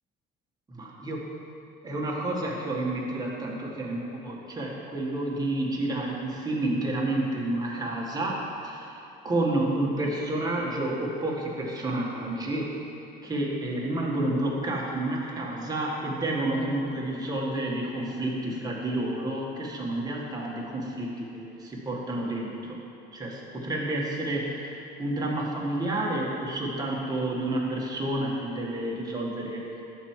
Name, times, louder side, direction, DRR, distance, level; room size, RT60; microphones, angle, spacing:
voice 1, 0.7-1.2 1.8-8.9 9.2-12.7 13.2-22.8 23.1-29.8, right 1 dB, 20° right, -3 dB, 1.8 m, -30 dB
12.0 x 4.7 x 7.5 m, 2.9 s
cardioid pair, 130°, 20 cm